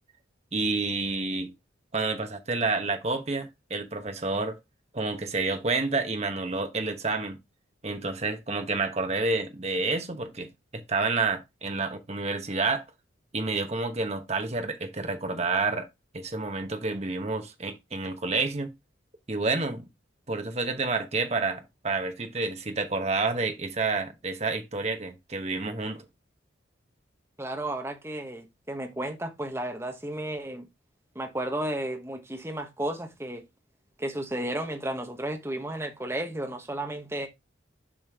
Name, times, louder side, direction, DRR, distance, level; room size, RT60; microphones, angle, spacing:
voice 1, 0.5-1.5 1.9-4.6 4.9-7.4 7.8-12.8 13.3-15.9 16.1-18.7 19.3-19.9 20.3-26.0, right 3 dB, 35° right, 1.1 m, -29 dB
voice 2, 27.4-30.7 31.1-33.4 34.0-37.3, right 1 dB, 15° right, 1.2 m, -33 dB
7.3 x 5.0 x 3.6 m
head